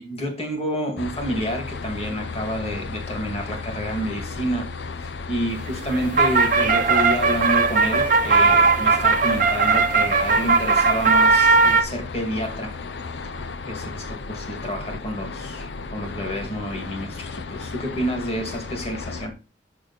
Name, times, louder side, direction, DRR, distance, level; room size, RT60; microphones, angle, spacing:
voice 1, 0.0-4.7 5.0-12.8 13.2-13.3 13.7-19.3, equal, 35° left, 2.2 m, -29 dB
sound 1, 1.0-19.3, left 4 dB, 75° left, 0.6 m, -34 dB
sound 2, 5.7-11.8, right 4 dB, 45° right, 0.9 m, -18 dB
6.8 x 6.7 x 4.0 m
head